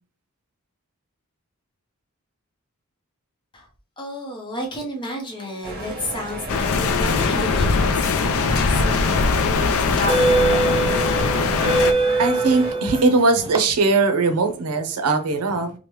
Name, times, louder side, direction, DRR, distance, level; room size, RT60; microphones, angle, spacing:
voice 1, 4.0-10.5, left 1 dB, 20° left, 0.7 m, -32 dB
sound 1, 5.6-12.7, right 2 dB, 45° right, 0.9 m, -34 dB
sound 2, 6.5-11.9, left 4 dB, 65° left, 0.4 m, -21 dB
sound 3, 9.0-9.1 9.8-13.6, right 3 dB, 25° right, 0.3 m, -22 dB
voice 2, 12.2-15.7, right 3 dB, 80° right, 0.6 m, -20 dB
3.1 x 2.1 x 3.0 m
head